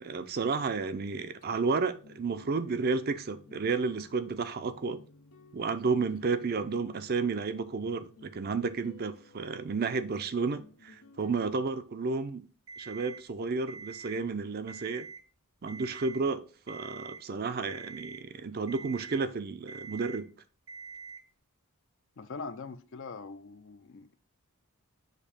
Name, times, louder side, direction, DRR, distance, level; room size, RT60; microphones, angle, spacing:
voice 1, 0.0-5.0 5.5-12.4 12.8-15.1 15.6-20.3, right 4 dB, 45° right, 0.5 m, -32 dB
sound 1, 1.4-11.8, left 3 dB, 90° left, 0.8 m, -56 dB
Alarm, 12.7-13.2 13.7-14.2 14.6-15.2 15.7-16.2 16.7-17.2 17.7-18.2 18.7-19.2 19.7-20.2 20.7-21.2, right 5 dB, 75° right, 1.1 m, -45 dB
voice 2, 22.2-24.1, left 4 dB, 55° left, 0.5 m, -42 dB
6.6 x 2.8 x 5.2 m
head